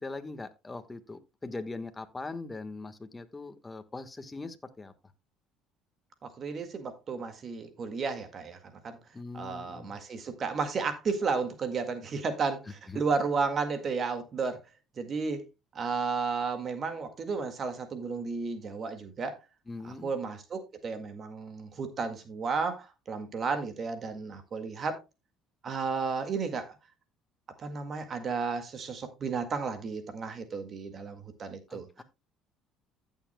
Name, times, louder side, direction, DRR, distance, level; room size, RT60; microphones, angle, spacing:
voice 1, 0.0-4.9 9.1-10.0 12.9-13.0 19.7-20.1 31.7-32.0, left 3 dB, 20° left, 1.4 m, -41 dB
voice 2, 6.2-8.6 8.8-9.0 9.3-14.6 15.0-15.4 15.7-19.4 19.8-25.0 25.6-26.8 27.6-32.0, right 4 dB, 45° right, 1.8 m, -33 dB
15.0 x 7.3 x 2.2 m
supercardioid pair, 85°, 0 cm